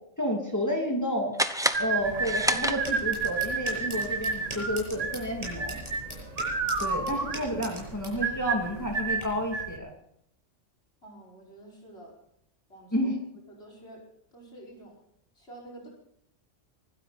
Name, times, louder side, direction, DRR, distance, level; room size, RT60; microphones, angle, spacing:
voice 1, 0.2-1.3 1.8-5.8 6.8-9.9 12.9-13.2, equal, 15° left, 0 dB, 2.7 m, -30 dB
sound 1, 1.3-3.3, equal, 5° right, 0.7 m, -29 dB
sound 2, 1.7-9.8, right 4 dB, 80° right, 2.1 m, -30 dB
sound 3, 2.0-9.2, right 1 dB, 30° right, 7.9 m, -42 dB
voice 2, 11.0-12.1 12.7-13.1 13.5-14.0 14.3-15.0 15.4-15.9, right 1 dB, 60° left, -3 dB, 5.5 m, -48 dB
25.0 x 12.5 x 4.2 m, 0.72 s
omnidirectional pair, 1.2 m